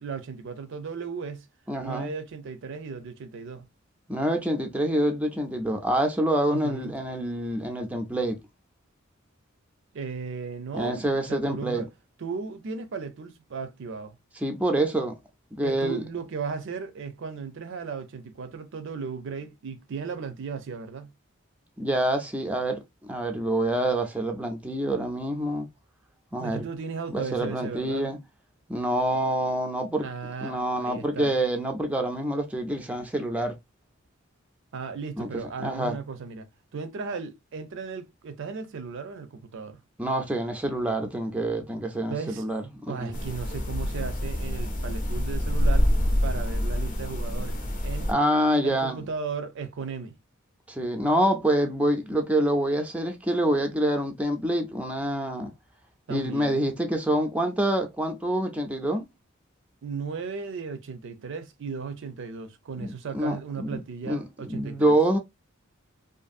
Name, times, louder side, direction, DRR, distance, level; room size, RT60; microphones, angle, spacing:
voice 1, 0.0-1.5 1.8-3.7 6.5-6.9 9.9-11.9 12.2-14.2 15.6-21.1 26.4-28.1 30.0-31.3 34.7-36.5 36.7-39.8 42.1-42.4 42.9-45.9 46.2-48.1 48.6-50.1 56.1-56.7 59.8-64.9, right 5 dB, 60° right, 0.5 m, -36 dB
voice 2, 1.7-2.1 4.1-8.4 10.7-11.9 14.4-15.2 15.6-16.0 21.8-25.7 26.3-26.7 27.1-28.2 28.7-30.1 30.4-33.6 35.2-36.0 40.0-43.2 48.1-49.0 50.7-55.5 56.1-59.1 62.8-63.8 64.1-65.2, right 1 dB, 5° right, 0.4 m, -26 dB
sound 1, 43.1-48.1, equal, 40° left, 0.6 m, -26 dB
2.6 x 2.5 x 2.4 m
head